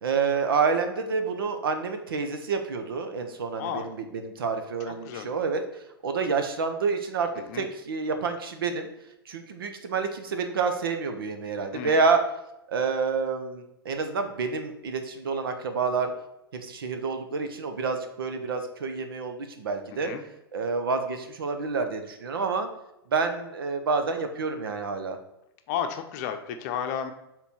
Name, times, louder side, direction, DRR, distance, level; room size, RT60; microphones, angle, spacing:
voice 1, 0.0-8.9 9.3-12.2 12.7-16.1 16.5-20.1 20.5-22.7 23.1-25.2, right 4 dB, 65° right, 6 dB, 0.9 m, -28 dB
voice 2, 3.6-3.9 5.0-5.3 7.4-7.7 11.7-12.0 19.9-20.2 25.7-27.1, left 8 dB, 40° left, 7 dB, 0.7 m, -32 dB
6.9 x 3.8 x 4.4 m, 0.88 s
figure-of-eight pair, 100°, 13 cm